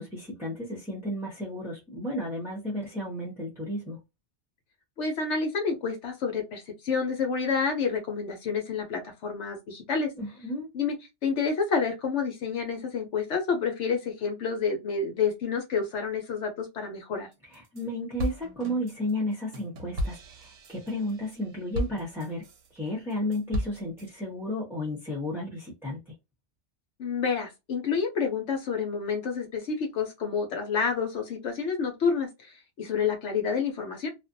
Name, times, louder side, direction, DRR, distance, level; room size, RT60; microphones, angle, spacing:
voice 1, 0.0-4.0 10.2-10.7 17.4-22.5 22.7-26.1, left 1 dB, 5° right, 0.7 m, -33 dB
voice 2, 5.0-10.1 10.7-10.9 11.2-17.3 27.0-34.1, left 5 dB, 70° left, 1.0 m, -29 dB
sound 1, 17.3-17.8 18.2-22.7 23.1-24.1, equal, 60° right, 0.9 m, -35 dB
2.5 x 2.2 x 2.5 m
omnidirectional pair, 1.2 m